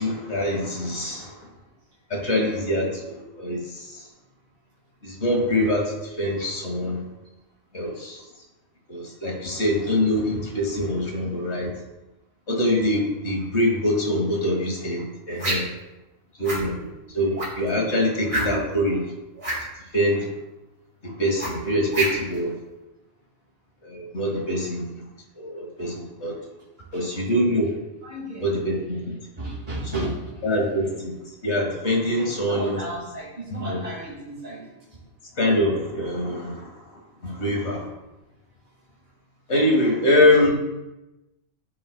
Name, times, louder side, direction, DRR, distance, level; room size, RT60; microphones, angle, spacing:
voice 1, 0.0-1.4 2.1-4.1 5.0-7.0 7.7-8.2 8.9-11.7 12.5-15.7 16.4-16.8 17.1-19.1 19.9-20.3 21.0-22.5 23.8-24.8 25.4-26.3 26.9-27.7 28.4-29.1 29.9-30.1 30.4-31.1 31.4-32.8 33.5-33.8 35.4-37.9 39.5-40.5, left 1 dB, 60° left, 0 dB, 1.8 m, -24 dB
sound 1, 15.4-15.8 16.4-16.7 17.4-17.7 18.3-18.7 19.4-19.6 21.4-22.4, right 1 dB, 65° right, 2.6 m, -27 dB
voice 2, 16.5-16.9 26.9-27.0 28.0-28.4 29.4-30.2 32.1-34.6 34.9-35.0, right 1 dB, 40° right, -7 dB, 2.0 m, -35 dB
13.5 x 5.3 x 2.2 m, 1.0 s
omnidirectional pair, 1.3 m